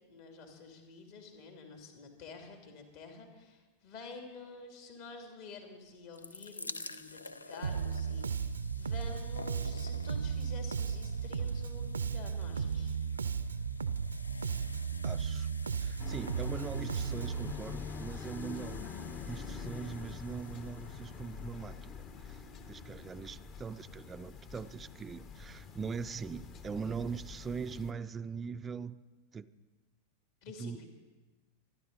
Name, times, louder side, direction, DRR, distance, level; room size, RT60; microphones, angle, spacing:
voice 1, 0.1-12.9 30.4-30.9, left 4 dB, 50° left, 2.9 m, -49 dB
sound 1, 5.9-22.9 23.7-23.8 24.0-24.1, left 2 dB, 80° left, 0.6 m, -51 dB
Bass guitar, 7.6-17.5, right 6 dB, 75° right, 0.6 m, -35 dB
voice 2, 15.0-15.5 15.8-18.9 19.2-29.0 29.3-29.5 30.6-30.8, right 6 dB, 20° right, 0.5 m, -41 dB
sound 2, 16.0-27.9, left 5 dB, 35° left, 1.2 m, -45 dB
26.0 x 11.0 x 4.1 m
figure-of-eight pair, 90°, 0 cm